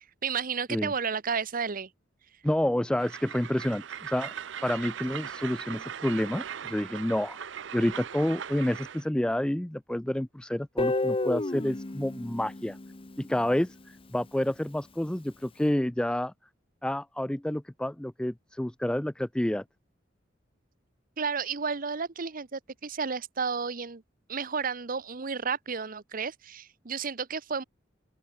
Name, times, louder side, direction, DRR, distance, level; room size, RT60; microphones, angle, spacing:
voice 1, 0.2-1.9 21.2-24.0 24.3-27.6, right 5 dB, 50° right, 1.0 m, -32 dB
voice 2, 2.4-4.3 4.6-7.4 7.7-12.8 13.2-13.7 14.1-16.3 16.8-19.6, left 1 dB, 5° left, 0.3 m, -29 dB
Train, 3.0-9.1, right 8 dB, 75° right, 0.6 m, -39 dB
Guitar, 10.8-13.7, left 2 dB, 30° left, 0.9 m, -31 dB
open air
head